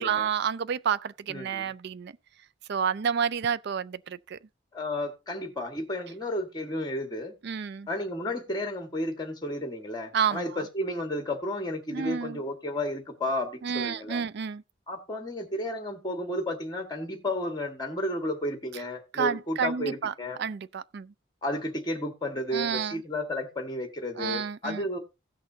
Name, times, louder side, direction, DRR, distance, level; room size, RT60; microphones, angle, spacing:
voice 1, 0.0-2.1 2.7-4.4 7.4-7.9 10.1-10.6 11.9-12.4 13.6-14.6 19.1-20.1 20.4-21.1 22.5-23.0 24.2-24.9, right 7 dB, 60° right, 0.4 m, -30 dB
voice 2, 1.3-1.7 4.7-7.3 7.9-14.2 14.9-20.4 21.4-25.0, left 1 dB, 20° left, 1.7 m, -32 dB
16.5 x 6.5 x 2.8 m
head